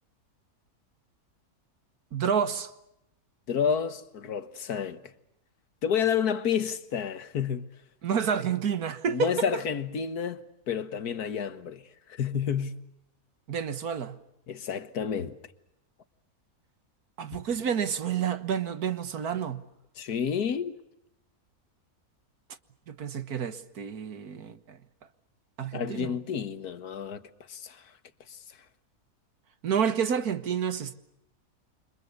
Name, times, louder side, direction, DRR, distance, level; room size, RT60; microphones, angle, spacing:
voice 1, 2.1-2.7 8.0-9.6 13.5-14.2 17.2-19.6 22.9-24.8 25.6-26.2 29.6-30.9, right 7 dB, 80° right, 1.9 m, -29 dB
voice 2, 3.5-5.0 5.8-7.7 9.1-11.8 12.1-12.8 14.5-15.4 20.0-20.8 25.7-27.2 27.5-27.8 28.3-28.4, left 7 dB, 80° left, 1.9 m, -30 dB
29.5 x 25.5 x 6.8 m
omnidirectional pair, 1.6 m